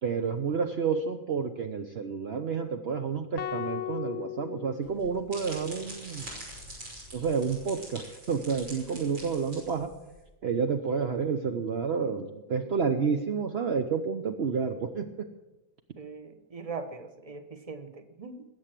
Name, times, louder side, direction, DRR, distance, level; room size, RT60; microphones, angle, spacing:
voice 1, 0.0-6.3 7.1-9.9 10.4-15.3, right 5 dB, 55° right, 5 dB, 0.7 m, -30 dB
sound 1, 3.4-5.7, left 13 dB, 80° left, 1.4 m, -37 dB
sound 2, 4.8-10.2, right 1 dB, 70° right, 6.6 m, -45 dB
voice 2, 15.9-18.5, right 4 dB, 25° right, 7 dB, 1.0 m, -41 dB
21.0 x 8.6 x 7.5 m, 1.1 s
omnidirectional pair, 2.1 m